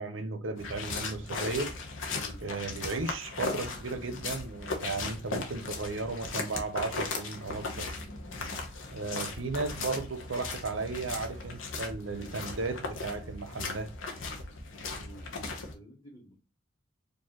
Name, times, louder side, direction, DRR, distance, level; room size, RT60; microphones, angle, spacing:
voice 1, 0.0-1.8 2.4-7.9 8.9-13.9, right 3 dB, 80° right, 0.7 m, -35 dB
sound 1, 0.6-15.7, left 3 dB, 80° left, 0.9 m, -37 dB
voice 2, 2.1-2.4 14.9-16.3, equal, 20° left, 1.4 m, -52 dB
4.6 x 2.7 x 2.9 m
head